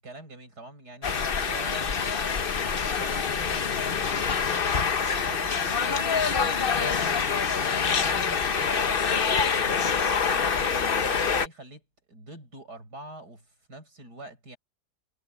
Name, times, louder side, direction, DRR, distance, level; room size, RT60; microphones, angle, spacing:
voice 1, 0.0-1.9 2.8-7.2 7.7-11.8 12.1-14.6, right 2 dB, 90° right, 7.8 m, -45 dB
sound 1, 1.0-11.5, left 6 dB, 40° left, 1.0 m, -26 dB
omnidirectional pair, 1.7 m